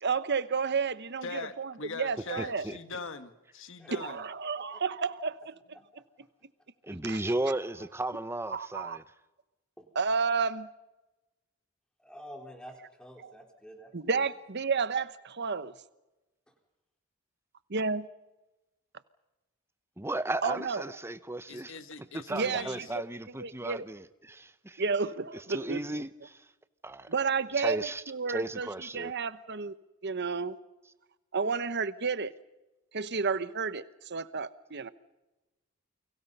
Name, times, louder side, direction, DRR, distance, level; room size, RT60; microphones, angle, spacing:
voice 1, 0.0-2.6 3.9-5.8 7.1-7.2 8.5-9.0 9.9-10.7 13.9-15.7 17.7-18.1 20.4-20.8 22.3-22.7 23.4-23.9 24.8-25.8 27.1-28.7 28.9-29.7 30.0-30.6 31.3-32.3 32.9-34.9, right 5 dB, 55° right, 1.0 m, -31 dB
voice 2, 1.2-4.3 7.3-7.4 21.5-23.0, left 4 dB, 65° left, 1.7 m, -42 dB
voice 3, 2.4-2.8 6.8-9.0 20.0-21.7 22.1-24.8 25.3-26.5 26.8-27.3 27.6-28.0 28.3-29.1, right 1 dB, 10° right, 0.8 m, -35 dB
voice 4, 3.8-4.1 4.6-4.8 5.7-5.8 9.8-9.9 12.0-14.3, equal, 5° left, 4.1 m, -49 dB
30.0 x 24.0 x 5.5 m
head